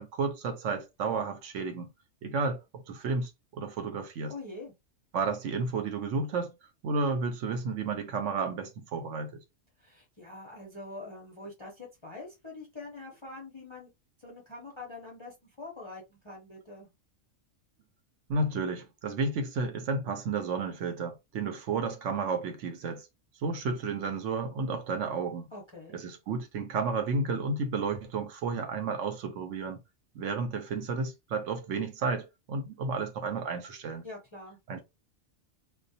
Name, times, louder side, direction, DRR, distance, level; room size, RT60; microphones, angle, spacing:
voice 1, 0.0-1.9 2.2-4.3 5.1-6.5 6.8-9.4 18.3-23.1 23.4-25.5 25.9-29.8 30.1-34.0 34.7-34.8, right 4 dB, 75° right, 0.9 m, -32 dB
voice 2, 4.3-4.7 9.8-13.9 14.2-16.9 25.5-26.0 34.0-34.6, left 2 dB, 35° left, 0.4 m, -44 dB
2.3 x 2.2 x 2.6 m
omnidirectional pair, 1.3 m